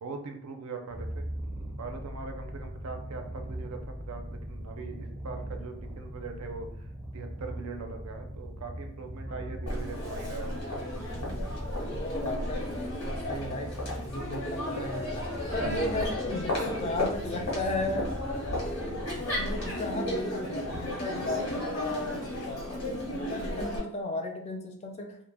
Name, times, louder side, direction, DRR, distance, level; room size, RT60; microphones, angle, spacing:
voice 1, 0.0-1.3 1.8-6.9 7.1-10.6 15.6-15.7, right 4 dB, 85° right, 4 dB, 0.5 m, -41 dB
Purr, 0.9-20.2, equal, 25° right, 0.5 m, -41 dB
voice 2, 9.6-10.4 11.8-13.7 14.0-15.3 15.5-18.1 18.5-19.1 19.3-25.2, left 2 dB, 30° left, 3 dB, 0.3 m, -35 dB
Crowd, 9.7-23.8, left 1 dB, 80° left, 1.0 m, -34 dB
2.1 x 2.0 x 3.2 m, 0.70 s
head